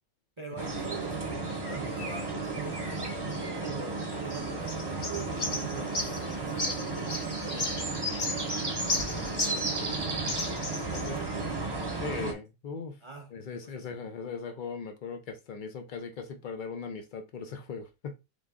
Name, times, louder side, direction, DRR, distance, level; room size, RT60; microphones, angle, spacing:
voice 1, 0.4-8.1 10.7-11.6 13.0-13.4 13.6-13.9, right 4 dB, 50° right, 0.3 m, -43 dB
sound 1, 0.6-12.3, right 3 dB, 20° right, 0.7 m, -33 dB
sound 2, 4.3-9.9 10.2-11.2, left 2 dB, 40° left, 0.9 m, -35 dB
voice 2, 9.1-10.2 10.9-11.2 12.0-13.0 13.3-18.1, left 5 dB, 85° left, 0.4 m, -39 dB
3.7 x 3.5 x 3.5 m
omnidirectional pair, 1.5 m